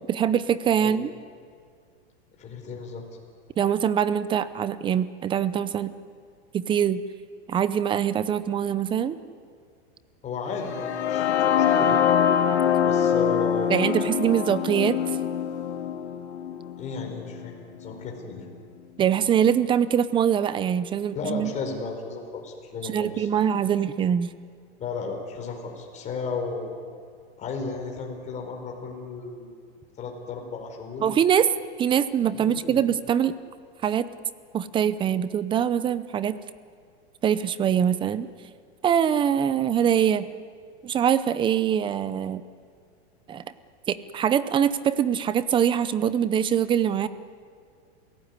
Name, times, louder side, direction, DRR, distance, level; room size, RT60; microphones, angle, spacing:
voice 1, 0.1-1.1 3.6-5.9 6.5-7.0 7.5-9.2 13.7-15.0 19.0-21.5 22.8-24.3 31.0-31.5 31.8-33.3 33.8-34.1 34.5-36.4 37.2-38.3 38.8-40.3 40.8-42.4 43.3-43.4 43.9-47.1, right 9 dB, 15° right, 15 dB, 0.6 m, -23 dB
voice 2, 2.4-3.0 10.2-11.3 11.6-12.0 12.8-13.8 16.8-17.5 17.8-18.4 21.1-23.3 24.8-26.7 27.4-29.5 30.0-31.1 32.4-32.8, left 4 dB, 20° left, 2 dB, 4.7 m, -34 dB
sound 1, 10.6-18.5, left 8 dB, 85° left, 2.1 m, -24 dB
27.5 x 18.0 x 9.7 m, 2.2 s
supercardioid pair, 150°, 32 cm